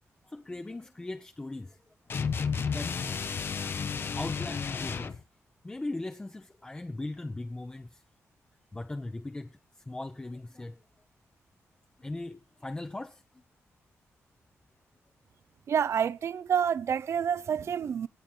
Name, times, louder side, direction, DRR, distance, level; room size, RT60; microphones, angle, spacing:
voice 1, 0.2-1.8 2.6-3.0 4.1-5.2 5.6-8.0 8.7-10.7 12.0-13.4, left 2 dB, 15° left, 0.7 m, -39 dB
sound 1, 2.1-5.2, left 6 dB, 45° left, 0.8 m, -32 dB
voice 2, 15.7-18.1, right 8 dB, 60° right, 0.6 m, -28 dB
17.5 x 7.6 x 4.4 m
wide cardioid pair, 140°, 5 cm